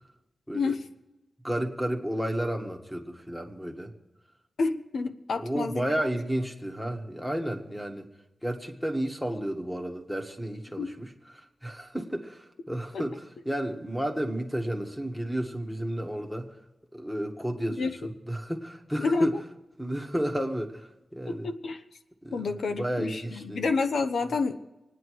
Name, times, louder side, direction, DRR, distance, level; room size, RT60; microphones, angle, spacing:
voice 1, 1.4-3.9 5.3-8.1 8.4-16.5 16.9-19.3 19.8-21.5 22.2-23.6, right 1 dB, 5° left, 4 dB, 1.6 m, -32 dB
voice 2, 4.6-5.8 10.8-10.9 17.8-18.1 19.0-19.4 21.3-21.8 22.3-24.6, left 4 dB, 85° left, 8 dB, 1.0 m, -29 dB
26.5 x 9.7 x 4.7 m, 1.0 s
wide cardioid pair, 165°, 0 cm